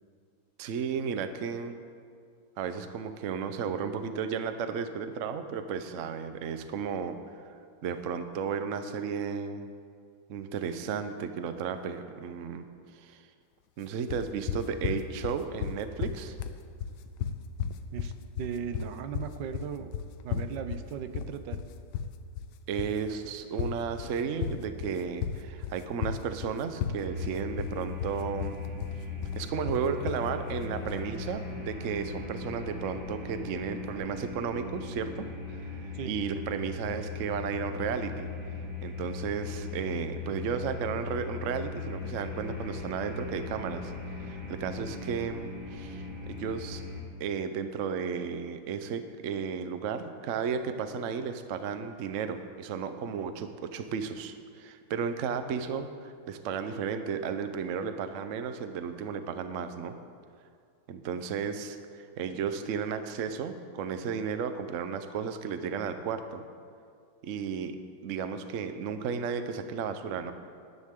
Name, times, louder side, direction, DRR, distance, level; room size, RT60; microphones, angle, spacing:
voice 1, 0.6-1.8 2.6-7.5 7.8-9.7 10.3-12.7 12.9-13.2 13.8-16.3 22.7-28.6 29.3-38.3 38.8-46.8 47.2-59.9 60.9-66.4 67.2-67.8 68.0-70.3, right 6 dB, 90° right, 9 dB, 0.6 m, -34 dB
sound 1, 14.1-31.1, left 8 dB, 80° left, 1.5 m, -35 dB
voice 2, 18.4-19.9 20.2-21.6 35.9-36.1 44.8-44.9, right 7 dB, 70° right, 9 dB, 1.2 m, -37 dB
sound 2, 27.0-47.0, left 4 dB, 35° left, 2.7 m, -39 dB
18.0 x 11.0 x 3.7 m, 2.2 s
omnidirectional pair, 2.3 m